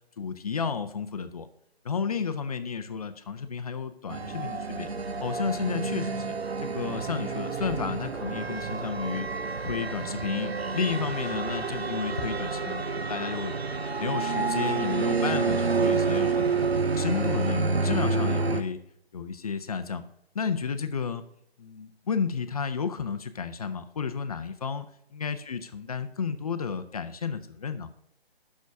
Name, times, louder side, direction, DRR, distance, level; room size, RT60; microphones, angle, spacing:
voice 1, 0.2-1.5 1.8-4.9 5.2-6.3 6.6-9.3 9.6-13.5 14.0-16.6 16.9-18.8 19.1-20.0 20.3-21.2 21.6-27.9, left 6 dB, 40° left, 10 dB, 0.6 m, -32 dB
sound 1, 4.1-18.6, right 4 dB, 85° right, 0.8 m, -29 dB
6.2 x 6.1 x 5.1 m, 0.75 s
figure-of-eight pair, 140°, 31 cm